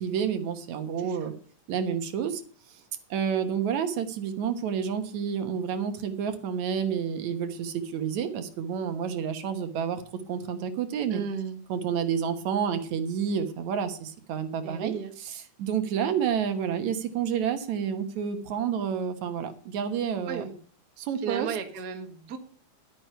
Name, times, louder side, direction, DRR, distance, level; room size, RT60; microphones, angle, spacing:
voice 1, 0.0-1.3 1.7-2.4 3.1-10.0 10.3-11.2 11.7-20.4 21.0-21.5, right 7 dB, 75° right, 8 dB, 2.5 m, -29 dB
voice 2, 1.0-1.3 11.1-11.6 14.6-15.1 20.3-20.6 21.2-22.4, right 6 dB, 40° right, 6 dB, 1.6 m, -34 dB
12.0 x 9.1 x 5.6 m, 0.43 s
omnidirectional pair, 3.4 m